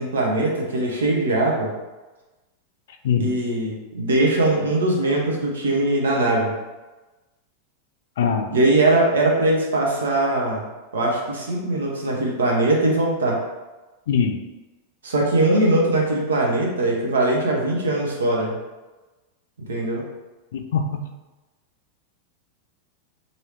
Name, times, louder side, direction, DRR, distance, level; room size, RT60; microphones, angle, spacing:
voice 1, 0.0-1.7 3.2-6.5 8.5-10.7 10.9-13.4 15.0-18.6 19.7-20.0, right 2 dB, 85° right, -1 dB, 0.8 m, -21 dB
voice 2, 3.0-3.4 8.2-8.5 14.1-14.4 20.5-21.1, left 6 dB, 75° left, 5 dB, 0.4 m, -22 dB
3.1 x 2.7 x 2.9 m, 1.1 s
hypercardioid pair, 100°, 0 cm